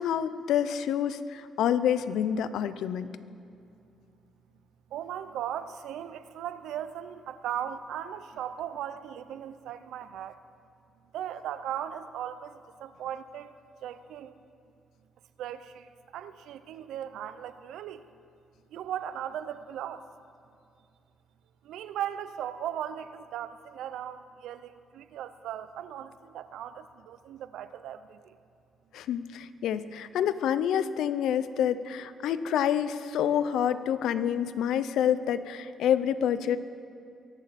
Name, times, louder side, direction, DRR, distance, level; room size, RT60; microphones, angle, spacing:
voice 1, 0.0-3.1 28.9-36.6, left 9 dB, 80° left, 14 dB, 0.6 m, -27 dB
voice 2, 4.9-10.4 11.1-13.5 13.8-14.4 15.4-18.1 18.7-20.1 21.6-28.4, right 10 dB, 80° right, 13 dB, 0.6 m, -38 dB
23.0 x 11.5 x 4.2 m, 2.6 s
cardioid pair, 90°, 0 cm